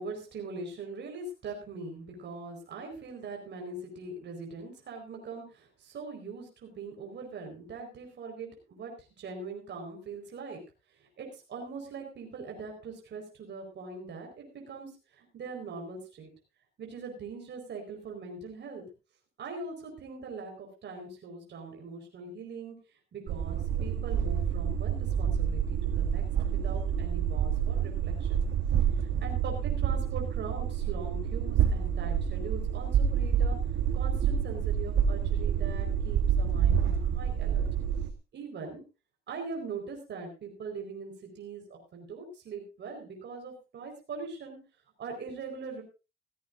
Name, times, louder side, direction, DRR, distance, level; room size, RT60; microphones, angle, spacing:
voice 1, 0.0-10.6 10.9-16.3 16.8-18.8 19.4-26.2 26.6-28.4 29.0-33.6 33.9-37.6 38.3-38.8 39.3-44.6 45.0-45.8, right 4 dB, 60° right, 2 dB, 4.6 m, -42 dB
sound 1, 23.3-38.1, right 8 dB, 80° right, 1.3 m, -28 dB
17.0 x 16.0 x 2.6 m, 0.30 s
cardioid pair, 90°, 20 cm